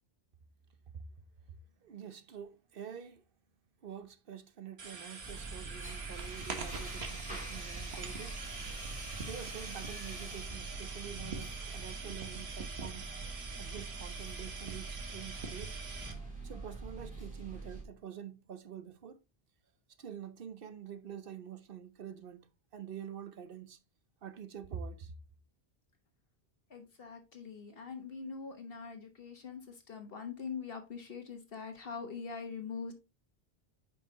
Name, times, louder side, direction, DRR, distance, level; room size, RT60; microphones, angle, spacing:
voice 1, 1.8-3.2 3.8-8.4 9.2-13.2 13.6-15.8 16.4-19.2 20.0-23.8 24.2-25.1, right 8 dB, 65° right, 0.9 m, -47 dB
sound 1, 4.8-16.1, right 4 dB, 85° right, 1.5 m, -44 dB
sound 2, 5.2-17.8, right 3 dB, 10° right, 3.1 m, -44 dB
voice 2, 26.7-32.9, left 5 dB, 65° left, 1.3 m, -43 dB
9.3 x 5.2 x 2.8 m
omnidirectional pair, 1.0 m